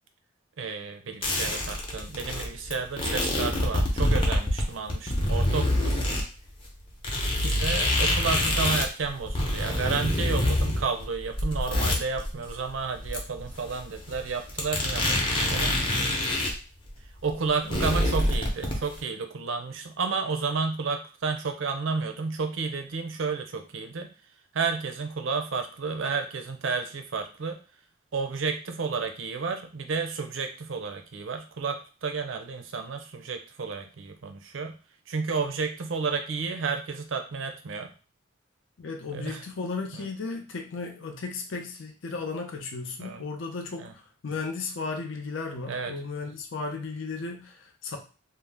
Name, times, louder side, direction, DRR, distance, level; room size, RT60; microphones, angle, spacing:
voice 1, 0.6-5.9 7.4-15.8 17.2-24.1 24.5-27.6 28.1-34.8 35.1-37.9 39.1-39.4 39.9-40.1 43.0-43.2 43.8-43.9 45.7-45.9, right 4 dB, 75° right, 6 dB, 0.5 m, -31 dB
sound 1, 1.2-6.2 6.6-6.7 7.0-16.6 16.9-17.0 17.2-19.0, left 1 dB, 25° left, 0.6 m, -26 dB
voice 2, 38.8-48.0, left 4 dB, 75° left, 3 dB, 0.6 m, -35 dB
2.7 x 2.0 x 3.3 m, 0.35 s
head